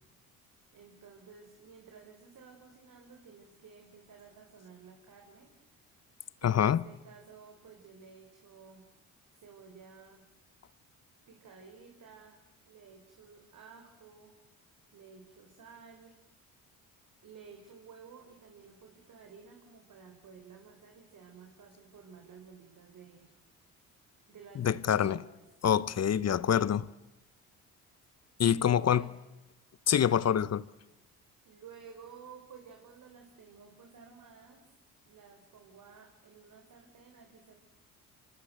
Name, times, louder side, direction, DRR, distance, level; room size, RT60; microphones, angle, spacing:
voice 1, 0.7-5.8 6.4-8.9 9.4-10.2 11.3-14.4 14.9-16.2 17.2-23.3 24.3-25.4 26.2-26.5 28.7-29.2 31.4-34.7 35.1-37.5, right 6 dB, 55° right, 4.1 m, -53 dB
voice 2, 6.4-6.8 24.6-25.2 25.6-26.9 28.4-29.0 29.9-30.6, left 9 dB, 45° left, 1.0 m, -26 dB
25.5 x 25.0 x 7.9 m
supercardioid pair, 65°, 37 cm